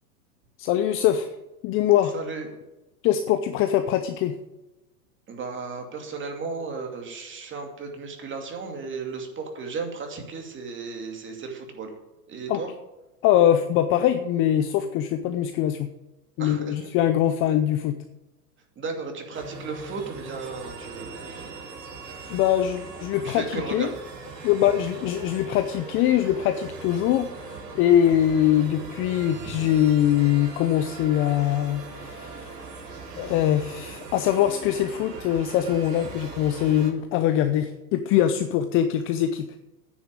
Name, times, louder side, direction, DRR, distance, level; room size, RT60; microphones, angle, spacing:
voice 1, 0.6-1.3 1.6-2.1 3.0-4.4 12.5-12.6 13.2-15.9 16.4-17.9 22.3-23.9 24.4-32.7 33.2-39.5, left 11 dB, 25° left, 9 dB, 0.5 m, -23 dB
voice 2, 2.1-2.5 5.3-11.9 12.3-12.7 16.4-16.9 18.8-21.6 23.2-23.9 24.6-24.7 27.0-27.1 29.5-29.6, right 4 dB, 25° right, 4 dB, 2.5 m, -35 dB
sound 1, 19.3-36.9, right 4 dB, 75° right, 4.2 m, -40 dB
9.7 x 7.2 x 8.8 m, 1.0 s
hypercardioid pair, 120°, 49 cm